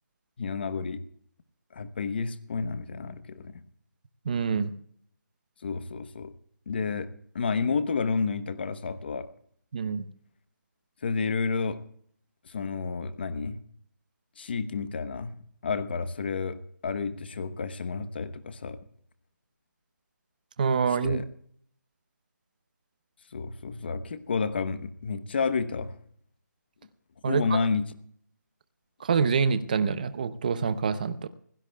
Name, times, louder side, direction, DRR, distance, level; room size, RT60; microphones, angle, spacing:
voice 1, 0.4-1.0 1.7-3.6 5.6-6.3 6.7-7.1 7.3-9.2 11.0-11.8 12.4-13.6 14.4-15.3 15.6-16.6 16.8-18.8 21.0-21.3 23.3-25.9 27.3-27.8, left 5 dB, 30° left, 12 dB, 1.0 m, -30 dB
voice 2, 4.3-4.7 9.7-10.0 20.6-21.2 27.2-27.6 29.0-31.3, right 5 dB, 25° right, 13 dB, 0.7 m, -26 dB
27.0 x 16.5 x 2.3 m, 0.63 s
figure-of-eight pair, 170°, 10 cm